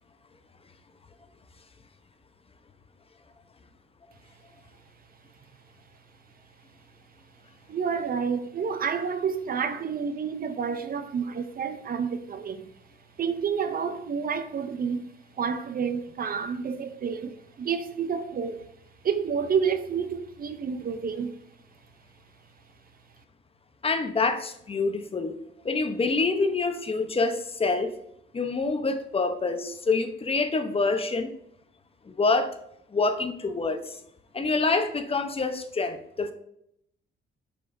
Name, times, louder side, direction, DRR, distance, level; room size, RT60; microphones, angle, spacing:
voice 1, 7.7-12.7 13.2-18.7 19.0-21.4, right 6 dB, 45° right, 0.6 m, -29 dB
voice 2, 23.8-25.4 25.6-27.9 28.3-31.3 32.1-32.6 32.9-34.0 34.3-36.3, left 3 dB, 30° left, 0.9 m, -26 dB
8.1 x 6.9 x 2.7 m
cardioid pair, 90°, 20 cm